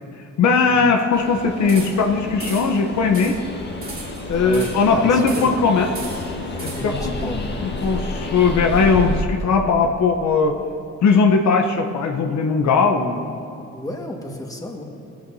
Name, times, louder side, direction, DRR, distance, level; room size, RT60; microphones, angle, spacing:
voice 1, 0.4-3.4 4.3-5.9 6.6-10.6 11.0-13.3, left 4 dB, 65° left, 4 dB, 1.0 m, -19 dB
Train, 1.1-9.2, left 2 dB, 35° left, 1.6 m, -30 dB
sound 1, 1.7-2.1 2.4-2.8 3.1-3.5 3.8-4.9 5.3-5.7 5.9-7.0, right 3 dB, 30° right, 2.7 m, -36 dB
voice 2, 4.3-5.6 6.7-7.5 13.7-14.8, left 1 dB, 10° left, 1 dB, 1.7 m, -32 dB
19.0 x 14.0 x 2.8 m, 2.5 s
cardioid pair, 90°, 30 cm